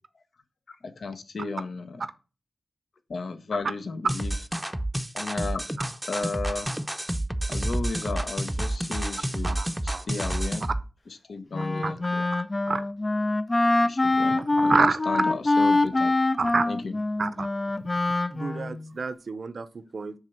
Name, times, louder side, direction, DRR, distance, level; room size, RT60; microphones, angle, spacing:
voice 1, 0.7-2.0 3.1-4.3 5.1-5.6 6.1-6.7 7.5-9.6 9.8-10.7 11.1-12.3 13.8-16.1 16.7-17.0, left 3 dB, 70° left, 0.9 m, -34 dB
sound 1, 4.1-10.8, right 1 dB, 10° right, 0.6 m, -29 dB
voice 2, 9.4-10.1 11.8-11.9 12.7-12.8 14.4-15.0 16.4-16.7 17.2-17.5 18.3-20.1, right 4 dB, 60° right, 0.6 m, -28 dB
Wind instrument woodwind instrument, 11.5-18.8, left 2 dB, 30° left, 0.4 m, -24 dB
7.3 x 3.4 x 6.3 m
wide cardioid pair, 85°, 0 cm